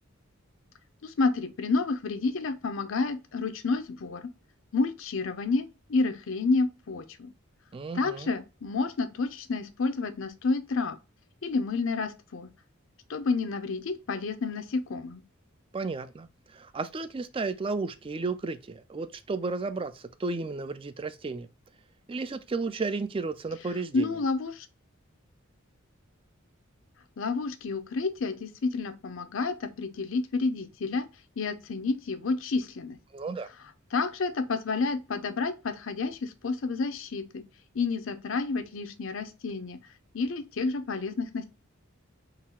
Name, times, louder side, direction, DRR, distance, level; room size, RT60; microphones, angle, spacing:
voice 1, 1.0-4.3 4.7-7.3 7.9-11.0 11.4-12.5 13.1-15.2 23.9-24.7 27.2-31.1 31.4-33.0 33.9-37.4 37.7-39.8 40.1-41.4, left 3 dB, 70° left, 0.6 m, -30 dB
voice 2, 7.7-8.3 15.7-16.3 16.5-21.5 22.1-24.1 33.1-33.5, right 3 dB, 25° right, 0.3 m, -33 dB
3.9 x 2.4 x 4.2 m
head